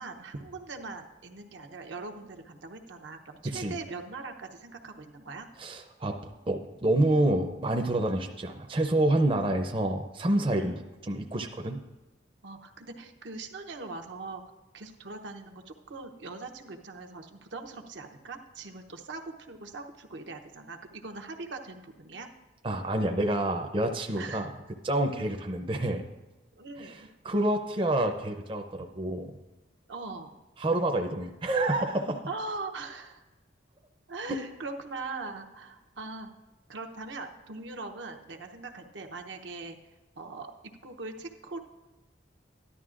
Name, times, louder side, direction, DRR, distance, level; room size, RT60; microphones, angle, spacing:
voice 1, 0.0-5.5 10.6-10.8 12.4-22.3 24.2-24.5 26.6-27.1 28.8-28.9 29.9-30.4 32.3-33.2 34.1-36.3 36.7-39.8 40.2-40.5 40.8-41.6, right 3 dB, 75° right, 4 dB, 0.8 m, -41 dB
voice 2, 3.4-3.7 5.6-6.2 6.5-11.8 22.6-24.5 24.8-26.1 26.8-29.3 30.6-32.2 34.3-34.4, right 1 dB, 30° right, 4 dB, 0.6 m, -28 dB
13.5 x 11.0 x 2.5 m, 1.1 s
head